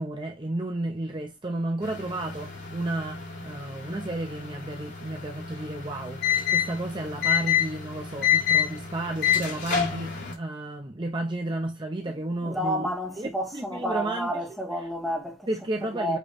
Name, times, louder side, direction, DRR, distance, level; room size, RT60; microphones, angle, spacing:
voice 1, 0.0-6.2 6.5-12.9 13.2-14.3 15.5-16.2, right 1 dB, 25° right, 0.7 m, -32 dB
sound 1, 1.8-10.3, left 9 dB, 60° left, 3.6 m, -28 dB
voice 2, 12.4-15.5 15.8-16.2, equal, ahead, 1.6 m, -30 dB
8.2 x 3.1 x 4.1 m
head